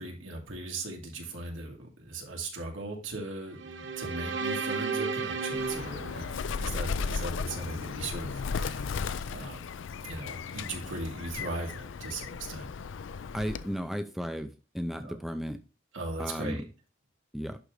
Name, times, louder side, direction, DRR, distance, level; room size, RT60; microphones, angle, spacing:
voice 1, 0.0-8.9 9.3-9.7 10.0-12.7 15.0-15.2 15.9-16.6, right 2 dB, 90° right, 0 dB, 2.5 m, -38 dB
sound 1, 3.5-6.9, right 4 dB, 65° right, 1.0 m, -34 dB
Bird, 5.5-13.8, left 5 dB, 75° left, 0.4 m, -35 dB
voice 2, 13.3-15.6 16.2-16.6 17.3-17.6, equal, ahead, 7 dB, 0.5 m, -34 dB
11.0 x 3.9 x 3.2 m, 0.33 s
head